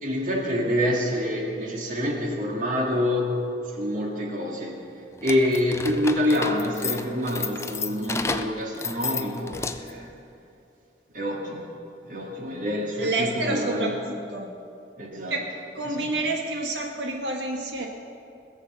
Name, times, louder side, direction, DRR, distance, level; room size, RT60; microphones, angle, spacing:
voice 1, 0.0-3.4 3.7-4.8 5.2-10.1 11.1-11.7 12.1-14.0 15.0-15.3 15.9-16.1, left 1 dB, 45° right, -1 dB, 2.1 m, -26 dB
sound 1, 5.2-10.0, left 4 dB, 15° left, 0.4 m, -32 dB
voice 2, 13.0-14.5 15.3-15.4 15.7-17.9, right 2 dB, 75° right, 1 dB, 1.7 m, -28 dB
20.5 x 7.0 x 7.0 m, 2.5 s
head